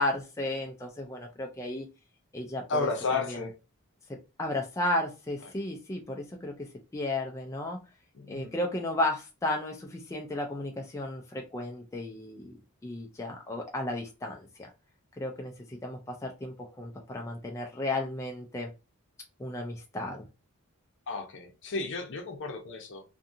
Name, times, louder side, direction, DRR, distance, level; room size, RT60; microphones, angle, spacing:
voice 1, 0.0-1.9 2.3-2.9 3.3-3.4 4.1-6.5 6.9-7.8 8.3-14.7 15.2-18.7 19.4-20.2, left 1 dB, 15° left, 1 dB, 0.3 m, -34 dB
voice 2, 2.7-3.5 8.1-8.5 21.1-23.0, left 4 dB, 55° left, 4 dB, 0.6 m, -32 dB
2.6 x 2.4 x 2.6 m, 0.29 s
head